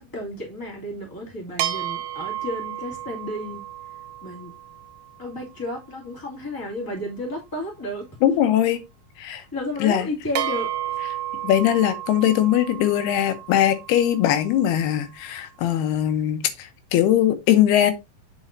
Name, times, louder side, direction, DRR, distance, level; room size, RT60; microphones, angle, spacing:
voice 1, 0.0-3.6 4.2-4.5 5.2-8.1 9.5-11.0, left 1 dB, 5° left, 1.7 m, -32 dB
sound 1, 1.6-5.3 10.4-14.7, right 12 dB, 75° right, 2.6 m, -32 dB
voice 2, 8.2-8.8 9.2-9.4 9.8-10.1 11.4-17.9, left 11 dB, 85° left, 2.8 m, -20 dB
8.1 x 6.2 x 2.7 m
omnidirectional pair, 4.6 m